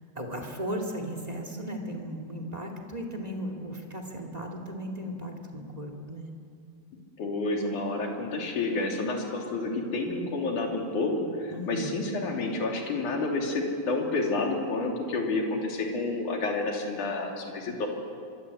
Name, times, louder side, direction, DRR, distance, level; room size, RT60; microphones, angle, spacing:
voice 1, 0.1-6.3 11.5-11.9, equal, 15° right, 3 dB, 1.5 m, -36 dB
voice 2, 7.2-17.9, left 3 dB, 50° left, 1 dB, 4.3 m, -29 dB
24.5 x 24.0 x 8.4 m, 2.5 s
omnidirectional pair, 4.6 m